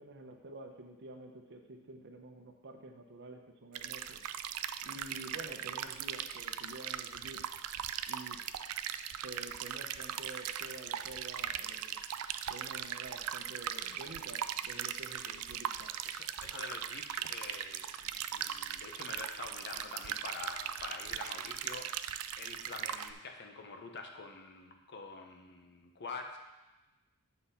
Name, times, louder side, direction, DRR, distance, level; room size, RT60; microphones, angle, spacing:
voice 1, 0.0-4.2 4.8-7.4 8.1-8.4 9.2-12.0 12.5-15.9, right 2 dB, 55° right, 4 dB, 0.8 m, -49 dB
sound 1, 3.7-23.1, right 10 dB, 75° right, 0.4 m, -39 dB
voice 2, 16.0-22.1 22.4-26.4, left 4 dB, 50° left, 4 dB, 0.8 m, -46 dB
7.9 x 4.1 x 5.6 m, 1.1 s
head